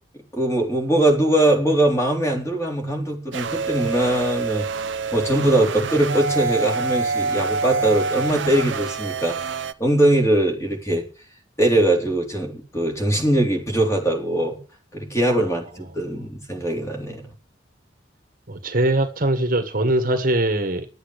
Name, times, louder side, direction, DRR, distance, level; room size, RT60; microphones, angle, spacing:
voice 1, 0.3-4.7 5.1-11.0 11.6-14.6 14.9-17.3, right 1 dB, 15° left, 1 dB, 3.7 m, -21 dB
sound 1, 3.3-9.7, right 4 dB, 80° right, 0.8 m, -26 dB
voice 2, 18.5-20.9, right 1 dB, 50° right, 7 dB, 1.7 m, -21 dB
11.5 x 8.6 x 8.2 m, 0.37 s
head